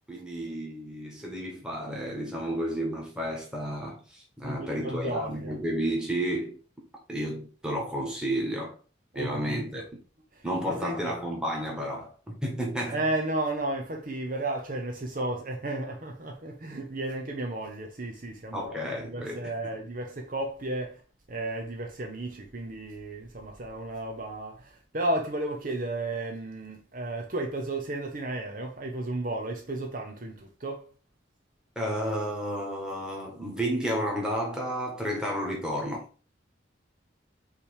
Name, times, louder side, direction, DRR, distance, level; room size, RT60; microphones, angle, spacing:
voice 1, 0.1-6.6 7.1-8.8 9.2-9.8 10.4-13.0 18.5-19.7 31.8-36.0, equal, 5° right, 1.8 m, -32 dB
voice 2, 4.4-5.5 9.1-9.8 10.7-11.2 12.9-21.0 21.3-30.9, right 2 dB, 45° right, 0.8 m, -33 dB
5.9 x 3.3 x 4.8 m
head